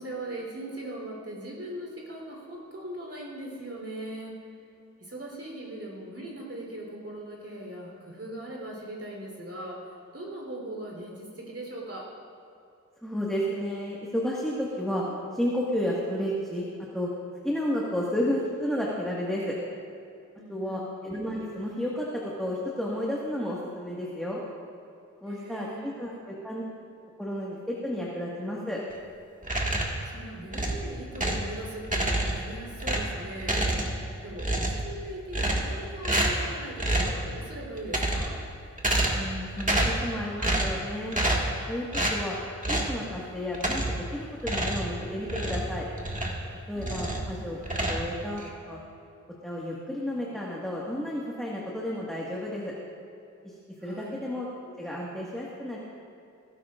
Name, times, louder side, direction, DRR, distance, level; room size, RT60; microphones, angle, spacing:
voice 1, 0.0-4.3 5.0-12.1 20.3-20.9 25.2-26.3 30.1-33.6 34.2-38.4 46.7-47.3 53.8-54.2, right 1 dB, 55° right, -2 dB, 3.7 m, -40 dB
voice 2, 13.0-15.0 15.3-16.7 16.9-17.1 17.4-19.6 20.5-24.4 25.2-26.6 27.2-28.8 39.1-41.2 41.7-42.4 42.7-45.9 46.7-47.6 47.9-48.8 49.4-52.7 53.4-54.5 54.8-55.8, equal, ahead, -5 dB, 1.7 m, -32 dB
sound 1, 29.4-30.0 30.5-31.5 31.8-32.5 32.8-34.1 34.4-34.9 35.3-35.8 36.0-36.5 36.8-37.2 37.8-38.4 38.8-39.3 39.6-40.0 40.4-40.8 41.1-41.5 41.9-42.2 42.6-43.0 43.5-44.0 44.4-46.5 46.8-47.3 47.6-48.5, right 1 dB, 25° right, 1.8 m, -28 dB
17.5 x 15.5 x 2.5 m, 2.6 s
wide cardioid pair, 90°, 30 cm